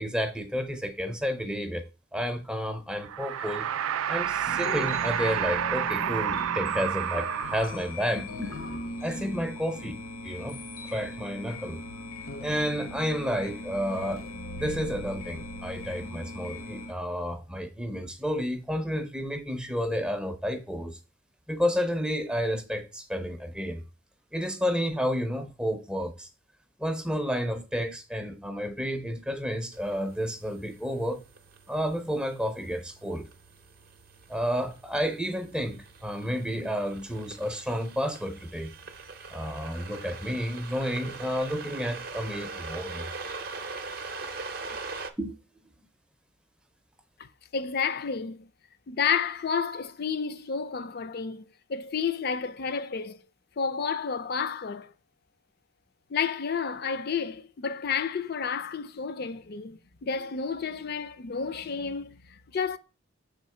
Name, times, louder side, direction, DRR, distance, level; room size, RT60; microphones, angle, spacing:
voice 1, 0.0-1.8 2.1-3.7 4.1-8.6 9.0-11.8 12.4-14.3 14.6-21.0 21.5-23.8 24.3-26.3 26.8-31.2 31.7-33.3 34.3-38.7 39.3-43.1 45.2-45.3, equal, 5° right, 0.5 m, -31 dB
sound 1, 3.0-8.1, right 10 dB, 90° right, 0.3 m, -30 dB
sound 2, 3.4-16.9, left 2 dB, 75° left, 0.8 m, -39 dB
sound 3, 29.7-45.1, right 4 dB, 50° right, 0.6 m, -42 dB
voice 2, 47.5-48.5 48.9-53.2 53.6-54.9 56.1-62.8, left 6 dB, 50° left, 0.5 m, -31 dB
6.6 x 3.7 x 4.3 m
head